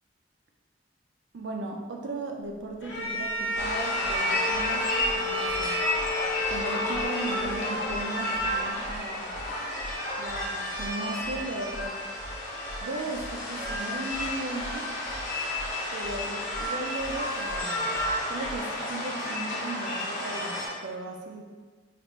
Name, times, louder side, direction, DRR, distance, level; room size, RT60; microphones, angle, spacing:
voice 1, 1.3-5.8 6.5-9.4 10.2-12.0 12.8-14.9 15.9-17.9 18.3-21.4, right 2 dB, 75° right, 2 dB, 0.4 m, -37 dB
Bowed string instrument, 2.8-8.1, left 2 dB, 85° left, 0.8 m, -32 dB
sound 1, 3.5-20.7, left 1 dB, 45° left, 0.7 m, -31 dB
sound 2, 3.5-3.7 4.0-4.2 4.5-4.7 5.0-5.1 5.5-5.6 5.9-6.1 6.4-6.6 6.9-7.1 7.4-7.5 7.9-8.0 8.3-8.5 8.8-9.0 9.3-9.5 9.8-9.9 10.3-10.4 10.7-10.9 11.2-11.4 11.7-11.9 12.2-12.3 12.7-12.8 13.1-13.3 13.6-13.8 14.1-14.3 14.6-14.7 15.1-15.2 15.5-15.7 16.0-16.2 16.5-16.7 17.0-17.1 17.5-17.6 17.9-18.1 18.4-18.6, equal, 10° left, 0.5 m, -43 dB
3.4 x 2.4 x 2.9 m, 1.4 s
head